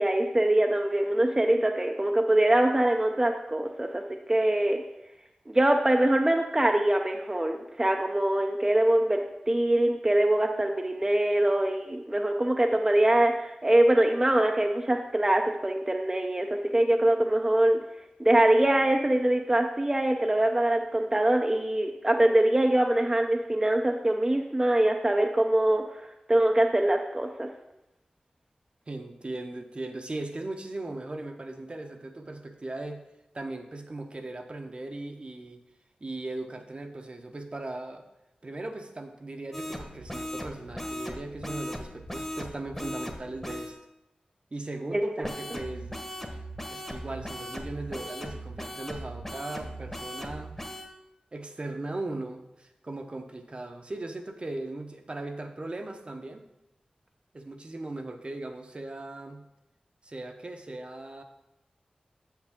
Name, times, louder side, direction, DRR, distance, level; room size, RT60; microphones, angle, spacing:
voice 1, 0.0-4.8 5.5-16.5 16.7-17.8 18.2-25.8 26.3-27.5 44.9-45.0, right 1 dB, 20° right, 2 dB, 0.6 m, -23 dB
voice 2, 28.9-33.0 33.3-35.6 36.0-38.1 38.4-43.8 44.5-46.0 46.7-50.6 51.3-56.4 57.3-59.4 60.0-61.2, right 2 dB, 45° right, 5 dB, 0.8 m, -38 dB
sound 1, 39.5-43.7 45.2-50.9, equal, 15° left, 1.2 m, -38 dB
7.4 x 7.2 x 3.7 m, 0.89 s
cardioid pair, 55°, 3 cm